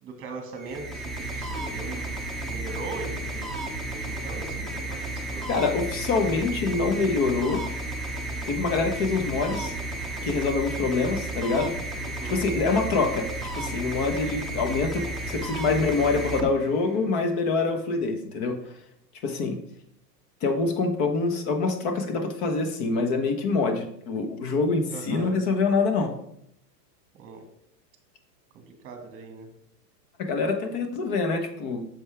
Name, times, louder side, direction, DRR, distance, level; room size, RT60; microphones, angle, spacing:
voice 1, 0.0-2.1 2.4-5.5 12.0-12.4 24.9-25.4 27.1-27.4 28.5-29.5, right 3 dB, 25° right, 5 dB, 1.7 m, -40 dB
sound 1, 0.5-17.1, right 2 dB, ahead, 0.7 m, -33 dB
voice 2, 5.5-7.6 8.5-9.8 10.2-11.7 12.3-13.3 13.6-18.6 19.2-19.6 20.4-26.1 30.2-31.9, left 4 dB, 40° left, 6 dB, 1.3 m, -25 dB
8.2 x 6.5 x 3.4 m, 0.72 s
hypercardioid pair, 130°, 50 cm